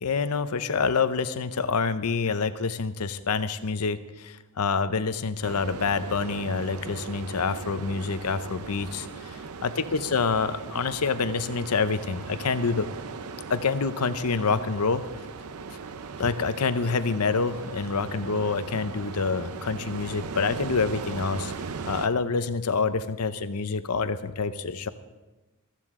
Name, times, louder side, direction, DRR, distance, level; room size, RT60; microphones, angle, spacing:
voice 1, 0.0-12.9 13.5-15.0 16.2-21.5 21.8-24.9, left 4 dB, 85° left, 12 dB, 0.7 m, -27 dB
sound 1, 5.4-22.1, right 5 dB, 70° right, 0.6 m, -38 dB
15.0 x 14.5 x 3.7 m, 1.1 s
head